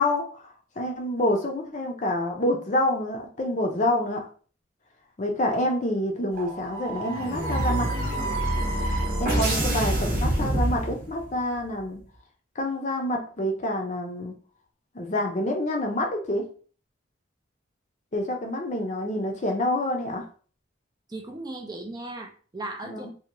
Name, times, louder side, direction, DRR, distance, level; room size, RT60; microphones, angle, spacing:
voice 1, 0.0-4.2 5.2-7.9 9.2-12.0 12.6-14.3 14.9-16.4 18.1-20.2 22.8-23.1, left 1 dB, 35° left, 2 dB, 0.6 m, -27 dB
sound 1, 6.3-11.3, right 1 dB, 45° right, 0.8 m, -26 dB
voice 2, 21.1-23.1, right 2 dB, 20° right, 3 dB, 0.3 m, -37 dB
2.9 x 2.6 x 2.6 m, 0.41 s
head